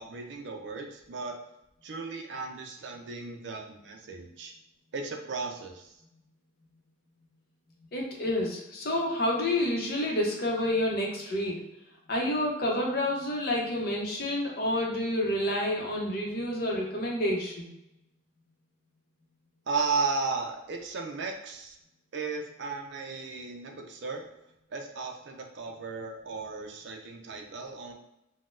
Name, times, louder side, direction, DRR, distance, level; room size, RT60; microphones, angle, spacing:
voice 1, 0.0-1.4 1.8-4.5 4.9-5.9 19.7-21.8 22.1-24.3 24.7-27.9, right 4 dB, 60° right, 3 dB, 0.4 m, -35 dB
voice 2, 7.9-11.6 12.1-17.7, left 1 dB, 45° left, -1 dB, 0.7 m, -29 dB
3.9 x 2.1 x 2.5 m, 0.87 s
head